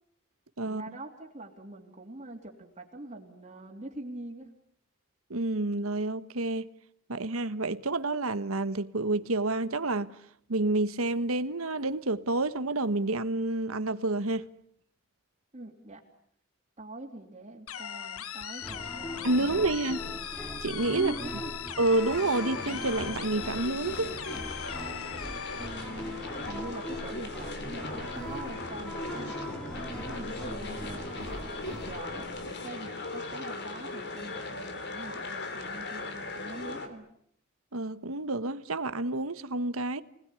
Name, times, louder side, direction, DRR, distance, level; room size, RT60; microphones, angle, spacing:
voice 1, 0.6-4.5 15.5-16.0 16.8-20.2 20.9-21.5 25.6-31.3 31.7-37.0, right 2 dB, 30° right, 3.2 m, -44 dB
voice 2, 5.3-6.7 7.1-10.2 10.5-14.4 19.2-20.0 20.6-21.1 21.8-24.2 37.7-40.0, right 2 dB, 75° right, 1.4 m, -29 dB
sound 1, 17.7-25.7, left 9 dB, 85° left, 1.1 m, -39 dB
sound 2, 18.6-32.5, equal, 5° left, 2.6 m, -40 dB
sound 3, 21.8-36.9, left 3 dB, 55° left, 3.5 m, -39 dB
29.5 x 20.0 x 9.9 m
head